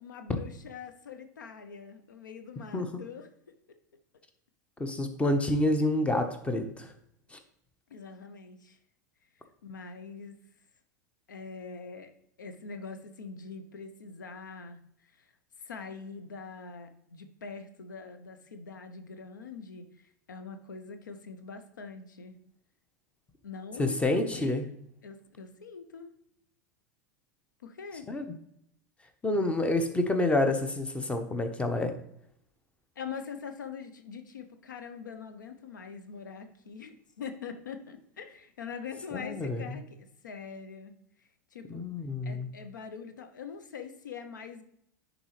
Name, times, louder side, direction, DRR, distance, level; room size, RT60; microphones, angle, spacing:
voice 1, 0.0-3.3 7.9-8.8 9.6-10.4 11.3-12.1 12.4-15.1 15.6-22.4 23.4-24.7 25.0-26.1 27.6-28.1 33.0-41.0 41.5-41.8 42.2-44.6, left 5 dB, 80° left, 8 dB, 0.7 m, -43 dB
voice 2, 4.8-6.9 7.3-7.4 23.8-24.7 28.1-28.2 29.2-31.9 39.1-39.6 41.7-42.5, left 1 dB, 10° left, 7 dB, 0.9 m, -28 dB
10.5 x 3.9 x 3.1 m, 0.73 s
hypercardioid pair, 90°, 10 cm